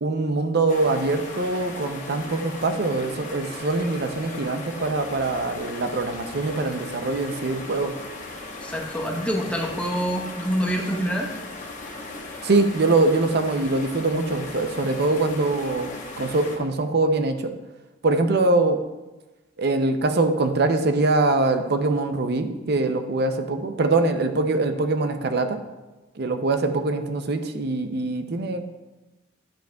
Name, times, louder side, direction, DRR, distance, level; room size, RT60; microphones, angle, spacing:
voice 1, 0.0-7.9 12.4-15.9 16.2-17.5 18.0-18.8 19.6-25.6 26.2-28.6, right 2 dB, 55° right, 7 dB, 0.6 m, -23 dB
sound 1, 0.7-16.6, left 2 dB, 40° left, 1.1 m, -37 dB
voice 2, 8.6-11.3, equal, 5° left, 0 dB, 0.9 m, -26 dB
10.5 x 7.6 x 2.3 m, 1.1 s
head